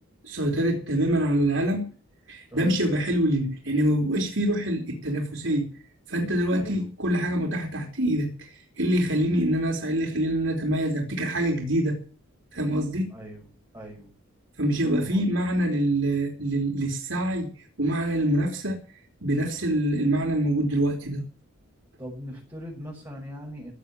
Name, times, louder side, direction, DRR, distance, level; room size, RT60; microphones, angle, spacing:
voice 1, 0.2-1.9 2.3-5.7 6.1-12.0 12.5-13.1 14.6-18.8 19.2-21.2, right 1 dB, 60° right, 1 dB, 3.5 m, -25 dB
voice 2, 6.5-6.9 13.1-13.5 13.7-14.1 14.9-15.3 22.0-23.7, equal, 15° right, -5 dB, 6.5 m, -40 dB
16.5 x 8.2 x 8.9 m, 0.38 s
head